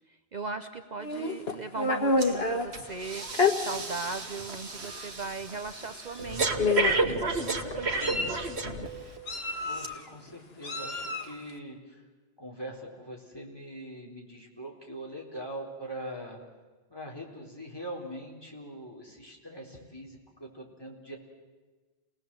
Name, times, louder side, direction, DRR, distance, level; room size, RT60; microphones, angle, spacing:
voice 1, 0.1-8.5, right 4 dB, 45° right, 8 dB, 0.9 m, -39 dB
Meow, 1.0-2.7 3.3-3.5 4.4-4.5 4.9-5.1 6.1-6.2 6.6-7.1 7.7-8.5 9.3-10.0 10.6-11.3, left 3 dB, 75° left, 1.8 m, -28 dB
Breathing, 2.2-2.4 2.7-9.2 9.7-9.9, right 3 dB, 90° right, 1.8 m, -32 dB
voice 2, 9.6-12.0 12.4-16.4 16.9-21.2, right 1 dB, 20° left, -1 dB, 4.2 m, -42 dB
29.5 x 18.5 x 7.7 m, 1.3 s
omnidirectional pair, 1.1 m